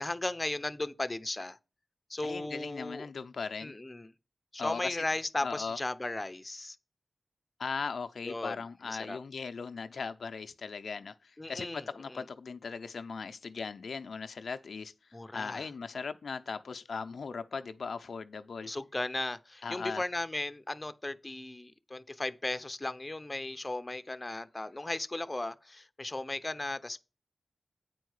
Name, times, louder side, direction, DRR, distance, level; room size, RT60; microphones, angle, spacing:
voice 1, 0.0-1.6 2.1-3.1 3.6-4.1 4.5-6.8 8.2-9.2 11.4-12.2 15.1-15.7 18.6-27.0, left 2 dB, 30° left, 0.8 m, -36 dB
voice 2, 2.2-3.7 4.6-5.0 5.4-5.8 7.6-14.9 15.3-18.7 19.6-20.0, left 5 dB, 90° left, 0.6 m, -38 dB
9.1 x 4.6 x 6.4 m
cardioid pair, 50°, 0 cm